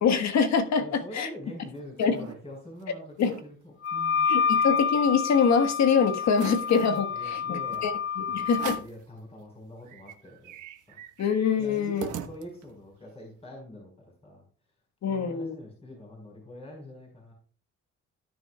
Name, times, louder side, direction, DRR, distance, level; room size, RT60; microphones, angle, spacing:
voice 1, 0.0-1.3 2.0-2.1 3.2-3.4 4.3-7.9 8.2-8.8 11.2-12.1 15.0-15.5, left 6 dB, 65° left, 7 dB, 1.4 m, -24 dB
voice 2, 0.8-4.3 7.1-10.5 10.9-11.0 11.6-14.4 15.1-17.3, left 1 dB, 20° left, -1 dB, 4.5 m, -45 dB
sound 1, 1.5-2.4 2.8-2.9 3.1-3.5 3.9-5.4 5.8-5.9 6.3-7.0 7.7-7.9 8.5-9.0 9.5-9.6 9.8-12.8, right 9 dB, 85° right, 1.2 m, -42 dB
Wind instrument woodwind instrument, 3.8-8.8, left 6 dB, 45° left, 0.6 m, -28 dB
18.0 x 6.8 x 2.3 m, 0.39 s
cardioid pair, 90°, 30 cm